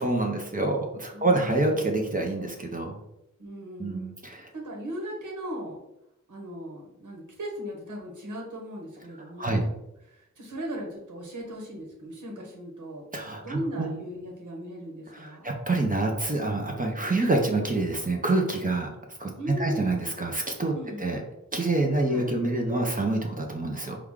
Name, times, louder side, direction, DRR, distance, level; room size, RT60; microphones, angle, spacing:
voice 1, 0.0-3.0 3.8-4.5 9.4-9.7 13.1-13.9 15.1-18.9 19.2-19.3 19.6-21.2 21.5-24.0, right 2 dB, 30° right, 1 dB, 0.7 m, -27 dB
voice 2, 1.1-1.9 3.4-4.0 4.3-5.8 6.3-9.7 10.1-13.0 13.4-15.5 19.3-20.1 20.7-21.3 22.1-22.3, equal, 85° right, -1 dB, 1.1 m, -38 dB
4.8 x 2.3 x 3.7 m, 0.88 s
wide cardioid pair, 110°, 30 cm